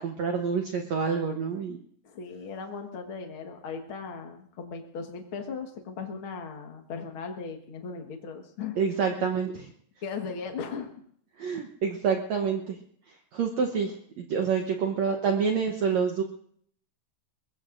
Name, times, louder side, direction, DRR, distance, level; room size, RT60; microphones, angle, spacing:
voice 1, 0.0-1.8 8.8-9.6 11.4-12.8 13.3-16.2, right 6 dB, 80° right, 4 dB, 1.5 m, -27 dB
voice 2, 2.0-8.8 9.2-9.3 10.0-10.9, left 5 dB, 55° left, 4 dB, 1.4 m, -37 dB
22.5 x 21.0 x 2.6 m, 0.64 s
omnidirectional pair, 4.7 m